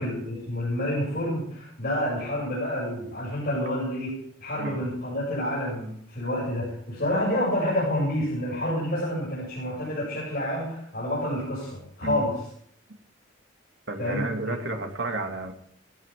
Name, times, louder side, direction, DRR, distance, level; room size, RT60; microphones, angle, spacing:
voice 1, 0.0-12.4 14.0-14.6, left 1 dB, 50° left, -6 dB, 7.3 m, -28 dB
voice 2, 13.9-15.5, right 2 dB, 60° right, 3 dB, 2.3 m, -31 dB
17.5 x 15.0 x 3.7 m, 0.65 s
head